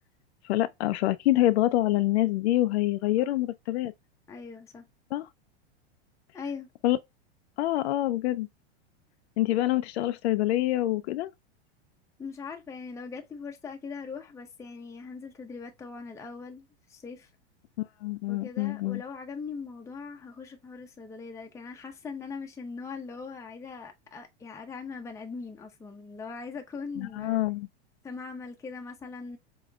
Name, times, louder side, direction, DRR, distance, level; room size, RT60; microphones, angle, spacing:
voice 1, 0.4-3.9 5.1-5.3 6.8-7.0 7.6-8.5 9.4-11.3 18.0-19.0 27.0-27.7, left 15 dB, 75° left, 0.5 m, -26 dB
voice 2, 4.3-4.9 6.3-6.7 12.2-16.6 16.9-17.3 18.3-27.4 28.0-29.4, left 5 dB, 10° left, 0.7 m, -40 dB
5.0 x 3.1 x 2.2 m
hypercardioid pair, 115°, 33 cm